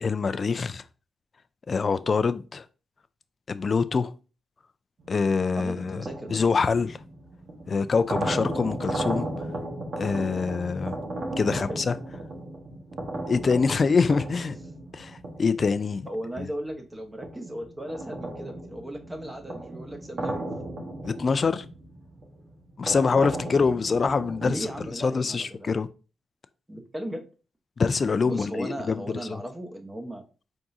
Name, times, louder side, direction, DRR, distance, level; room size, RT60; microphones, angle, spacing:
voice 1, 0.0-0.8 1.7-2.6 3.5-4.1 5.1-6.0 6.3-7.0 7.7-9.3 10.0-11.0 11.4-11.9 13.3-14.6 14.9-16.1 16.4-16.5 21.0-21.7 22.8-24.7 25.0-25.9 27.8-29.4, left 5 dB, 45° left, 0.4 m, -25 dB
sound 1, 5.0-16.7 17.2-24.9, right 1 dB, 60° right, 1.2 m, -35 dB
voice 2, 5.6-6.4 11.5-12.0 16.1-20.5 24.4-25.8 26.7-27.2 28.3-30.2, right 1 dB, 15° right, 1.0 m, -36 dB
4.6 x 3.6 x 2.6 m
cardioid pair, 75°, 0 cm